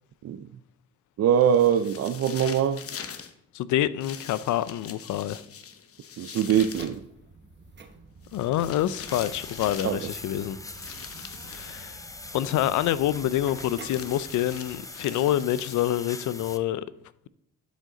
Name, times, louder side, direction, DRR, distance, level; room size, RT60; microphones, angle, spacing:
voice 1, 1.2-2.8 6.2-7.0 9.8-10.0, right 9 dB, 55° right, 0.5 m, -22 dB
sound 1, 1.4-3.3 4.0-7.0 8.2-10.0 10.7-11.7 13.3-16.1, left 7 dB, 50° left, 0.9 m, -43 dB
voice 2, 3.5-5.4 8.3-10.6 11.5-12.0 12.3-16.9, left 12 dB, 75° left, 0.5 m, -27 dB
sound 2, 6.5-14.8, right 4 dB, 35° right, 1.0 m, -48 dB
sound 3, 9.1-16.6, left 2 dB, 10° left, 0.6 m, -42 dB
11.5 x 5.2 x 3.8 m
cardioid pair, 90°, 30 cm